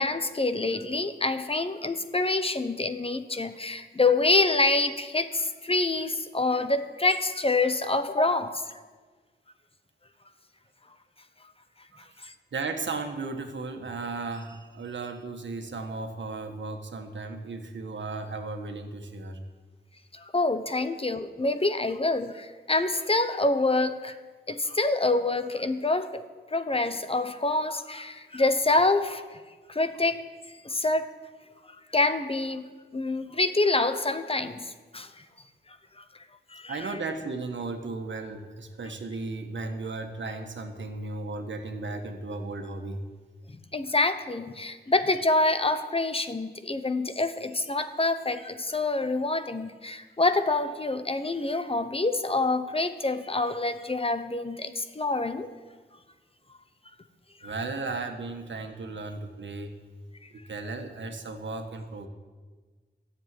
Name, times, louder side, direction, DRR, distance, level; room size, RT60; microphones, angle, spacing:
voice 1, 0.0-8.6 12.2-12.3 20.1-24.2 24.5-26.2 26.5-29.4 29.7-30.2 30.6-31.1 31.9-35.1 36.0-36.1 36.5-36.9 43.5-55.5 57.4-57.5, left 2 dB, 30° left, 10 dB, 1.0 m, -26 dB
voice 2, 12.2-19.4 36.7-43.0 57.4-59.7 60.3-62.1, right 3 dB, 90° right, 5 dB, 1.4 m, -35 dB
14.0 x 7.4 x 9.1 m, 1.4 s
wide cardioid pair, 80°, 19 cm